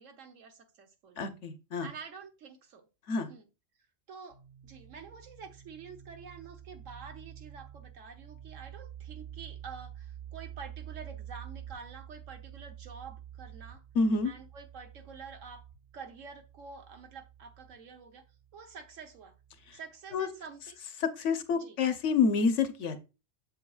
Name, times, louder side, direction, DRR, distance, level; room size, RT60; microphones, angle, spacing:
voice 1, 0.0-1.2 1.8-2.9 3.3-3.4 4.1-13.8 14.2-15.6 15.9-18.2 18.5-19.3 19.7-20.8 21.5-21.8, right 5 dB, 85° right, 1.4 m, -48 dB
voice 2, 1.2-1.9 3.1-3.3 13.9-14.3 19.7-19.8 20.1-20.3 21.2-23.0, left 4 dB, 70° left, 1.2 m, -28 dB
sound 1, 4.3-19.7, right 10 dB, 55° right, 1.5 m, -49 dB
7.8 x 7.3 x 2.3 m
omnidirectional pair, 1.3 m